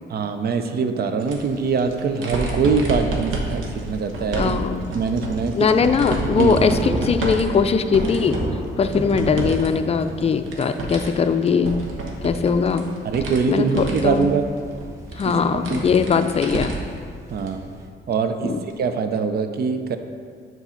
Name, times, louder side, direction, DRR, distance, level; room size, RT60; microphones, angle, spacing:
voice 1, 0.1-4.6 4.9-5.7 6.2-6.6 13.0-14.5 15.2-15.8 17.3-17.7 18.1-20.0, right 5 dB, 55° right, 8 dB, 0.6 m, -23 dB
sound 1, 1.2-9.7 10.0-17.0 17.4-17.5 18.7-18.8, right 2 dB, 85° right, 1.1 m, -30 dB
voice 2, 4.4-4.9 5.6-8.4 8.8-11.8 12.2-12.9 13.5-14.3 15.2-16.7 18.4-18.6, left 6 dB, 30° left, 8 dB, 0.4 m, -20 dB
sound 2, 4.6-4.8 5.2-17.9, right 1 dB, 15° right, 0.8 m, -35 dB
7.1 x 4.0 x 5.7 m, 2.1 s
cardioid pair, 90°, 20 cm